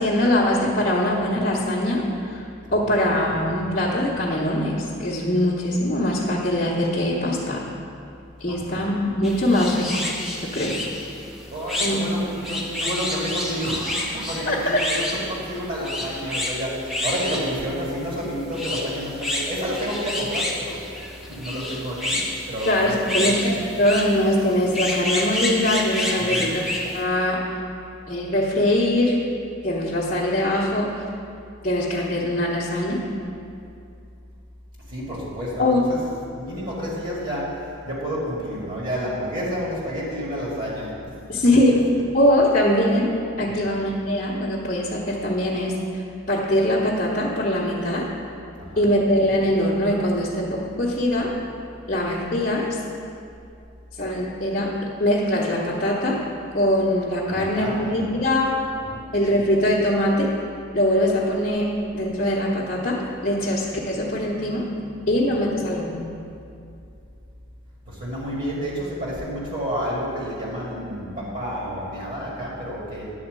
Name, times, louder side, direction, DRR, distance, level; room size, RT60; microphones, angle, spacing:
voice 1, 0.0-7.7 8.4-10.1 10.4-10.8 11.8-12.0 14.5-14.6 22.6-27.6 28.1-29.2 29.6-31.1 31.6-33.0 35.6-35.8 41.3-41.9 42.1-48.1 48.8-51.3 51.9-52.8 54.0-54.7 55.0-56.2 56.5-58.6 59.1-60.3 60.7-61.7 61.9-64.7 65.1-66.1, left 1 dB, 35° left, -7 dB, 1.0 m, -22 dB
voice 2, 2.7-3.1 3.4-3.7 8.5-8.8 11.5-20.8 21.2-22.2 22.5-23.4 26.2-26.5 34.9-36.0 36.3-41.0 41.5-41.6 43.5-43.7 48.6-48.8 57.3-58.0 58.5-59.0 67.9-73.1, equal, 40° right, -5 dB, 1.9 m, -30 dB
sound 1, 9.2-27.0, left 1 dB, ahead, 0.7 m, -29 dB
9.7 x 4.3 x 7.5 m, 2.6 s
head